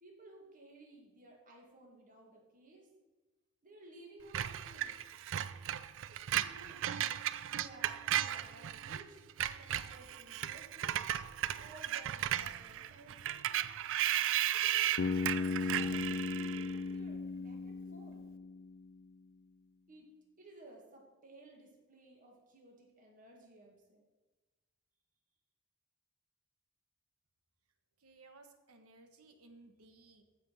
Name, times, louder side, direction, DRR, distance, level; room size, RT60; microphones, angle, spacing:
voice 1, 0.0-2.9 3.6-5.1 6.1-7.1 7.5-9.2 9.6-11.0 11.6-13.5 14.5-18.3 19.9-20.1 20.4-24.0, right 2 dB, 40° right, 0 dB, 2.1 m, -57 dB
Screech, 4.3-9.0 9.3-16.8, right 12 dB, 60° right, 0.4 m, -35 dB
Bass guitar, 15.0-19.0, left 4 dB, 50° left, 0.4 m, -36 dB
voice 2, 28.0-30.2, right 3 dB, 80° right, 6 dB, 1.3 m, -59 dB
14.0 x 5.2 x 5.8 m, 1.2 s
head